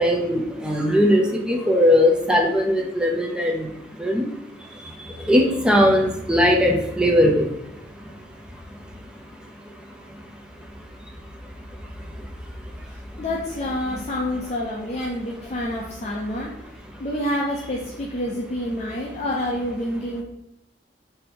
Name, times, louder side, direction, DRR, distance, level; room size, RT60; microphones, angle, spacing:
voice 1, 0.0-3.7 4.0-4.3 5.3-7.5, left 1 dB, 5° right, 1 dB, 0.6 m, -19 dB
voice 2, 13.2-16.5 17.0-20.2, left 1 dB, 40° left, -3 dB, 0.6 m, -28 dB
4.1 x 2.8 x 3.7 m, 0.86 s
head